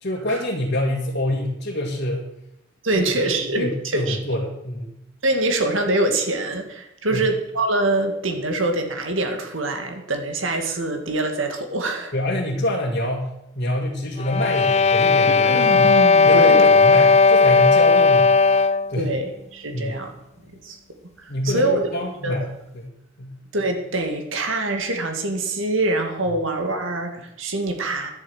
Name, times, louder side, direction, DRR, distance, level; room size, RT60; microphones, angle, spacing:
voice 1, 0.0-2.2 2.9-5.0 7.1-7.3 12.1-15.9 16.2-18.3 18.9-19.1 19.7-19.9 21.3-22.5 22.7-22.9 23.2-23.3, left 1 dB, 55° left, -3 dB, 2.1 m, -26 dB
voice 2, 2.8-4.2 5.2-12.1 15.4-16.7 19.0-20.8 21.2-21.9 22.2-22.3 23.5-28.1, right 2 dB, 75° right, 5 dB, 2.0 m, -24 dB
sound 1, 14.2-18.9, left 4 dB, 35° left, 0.4 m, -15 dB
11.0 x 8.0 x 7.9 m, 0.82 s
head